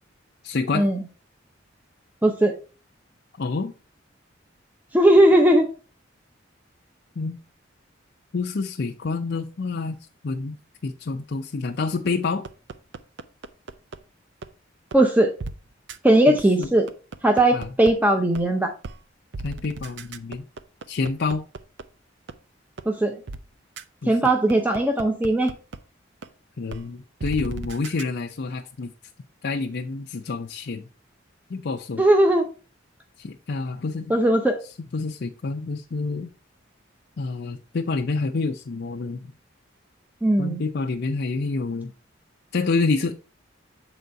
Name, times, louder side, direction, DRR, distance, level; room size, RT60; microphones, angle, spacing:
voice 1, 0.4-0.9 3.4-3.7 7.2-7.4 8.3-10.0 10.2-10.6 10.8-12.4 16.3-16.7 17.5-17.7 19.4-20.4 20.9-21.5 24.0-24.3 26.6-28.9 29.4-30.9 31.5-32.0 33.2-34.1 34.9-36.3 37.2-39.3 40.4-41.9 42.5-43.2, left 3 dB, 60° left, 2 dB, 0.5 m, -28 dB
voice 2, 2.2-2.6 4.9-5.7 14.9-15.3 16.0-16.9 17.2-18.7 22.9-23.2 24.1-25.5 32.0-32.4 34.1-34.6 40.2-40.6, right 1 dB, 10° right, 3 dB, 0.7 m, -18 dB
sound 1, 12.4-14.0 14.4-14.5 14.9-15.0 15.4-15.5 15.9-16.0 16.4-17.9 18.3-18.4 18.8-19.0 19.3-21.8 22.3-22.4 22.8-22.9 23.3-23.4 23.8-23.9 24.2-25.8 26.2-26.3 26.7-26.8 27.2-28.0, right 3 dB, 60° right, 0.5 m, -35 dB
7.7 x 4.0 x 4.6 m, 0.34 s
head